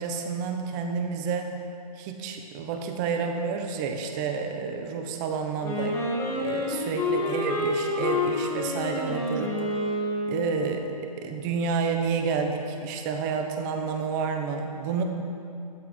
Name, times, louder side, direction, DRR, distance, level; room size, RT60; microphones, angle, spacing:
voice 1, 0.0-1.5 2.0-5.9 6.3-9.5 10.3-15.0, right 5 dB, 30° right, 4 dB, 1.2 m, -30 dB
Wind instrument woodwind instrument, 5.6-10.6, left 2 dB, 15° left, 2.3 m, -28 dB
14.0 x 9.8 x 4.6 m, 2.6 s
hypercardioid pair, 145°, 20 cm